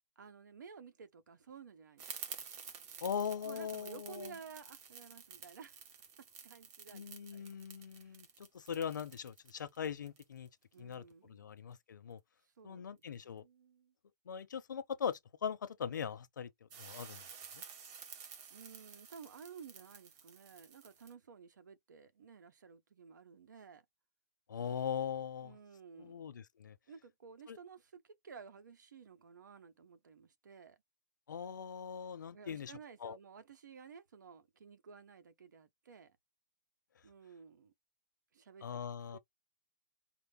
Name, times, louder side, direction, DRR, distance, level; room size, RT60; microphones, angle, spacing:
voice 1, 0.2-2.0 3.4-5.8 6.4-7.0 7.3-7.5 7.9-8.2 10.7-11.8 12.6-13.9 18.5-23.8 25.4-26.3 26.9-30.8 32.3-36.2 37.0-37.7 38.3-38.7 39.1-39.2, right 6 dB, 80° right, 1.1 m, -54 dB
sound 1, 2.0-10.9 16.7-21.1, right 7 dB, 25° right, 0.7 m, -51 dB
voice 2, 3.0-4.3 6.9-10.5 10.8-12.2 12.6-13.4 14.3-17.2 17.5-17.6 24.5-25.6 25.9-26.8 27.5-27.6 31.3-33.2 38.6-39.2, left 7 dB, 90° left, 0.8 m, -41 dB
4.9 x 2.1 x 3.5 m
hypercardioid pair, 165°, 10 cm